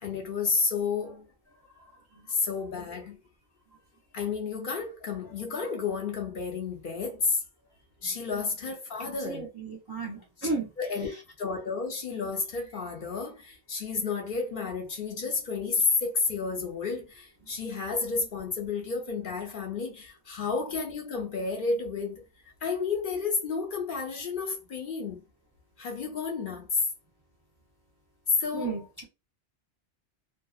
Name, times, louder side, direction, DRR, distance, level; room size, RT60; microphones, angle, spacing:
voice 1, 0.0-1.2 2.3-3.2 4.1-7.4 8.0-9.5 10.4-10.5 10.8-11.1 11.4-25.2 25.8-26.8 28.4-28.8, left 4 dB, 55° left, 0.7 m, -31 dB
voice 2, 9.2-10.7 28.5-29.0, right 4 dB, 35° right, 0.4 m, -33 dB
2.6 x 2.1 x 2.3 m
omnidirectional pair, 1.2 m